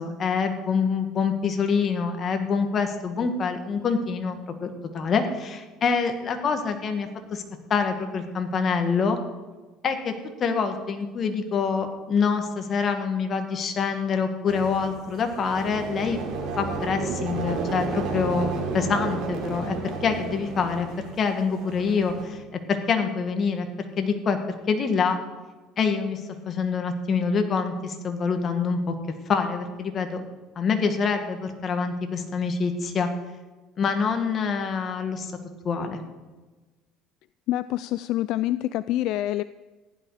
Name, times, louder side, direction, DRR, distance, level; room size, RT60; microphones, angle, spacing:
voice 1, 0.0-7.4 7.7-9.2 9.8-10.1 10.4-16.2 16.6-18.5 18.7-22.4 22.7-24.4 24.7-25.2 25.8-26.2 26.5-28.9 29.3-30.2 30.6-33.1 33.8-35.3 35.6-36.0, left 5 dB, 40° left, 6 dB, 1.8 m, -26 dB
sound 1, 14.5-22.3, right 4 dB, 60° right, 3.2 m, -32 dB
voice 2, 37.5-39.4, left 14 dB, 65° left, 15 dB, 0.3 m, -26 dB
15.0 x 11.0 x 4.9 m, 1.2 s
cardioid pair, 115°, 0 cm